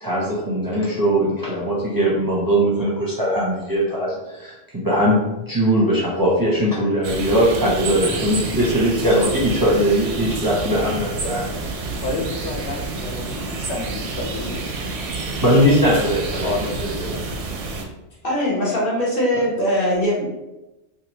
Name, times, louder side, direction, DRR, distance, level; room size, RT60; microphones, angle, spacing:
voice 1, 0.0-5.2 5.5-11.5 11.8-12.0 15.4-16.5 17.1-17.2, equal, 25° right, -6 dB, 0.6 m, -20 dB
sound 1, 7.0-17.8, right 3 dB, 85° right, 0.9 m, -28 dB
voice 2, 12.0-14.9 16.4-16.8 17.1-17.2 18.3-18.4, left 2 dB, 70° left, 1 dB, 0.8 m, -30 dB
voice 3, 18.2-20.2, equal, 55° left, -5 dB, 1.1 m, -21 dB
3.0 x 2.5 x 3.0 m, 1.0 s
omnidirectional pair, 1.2 m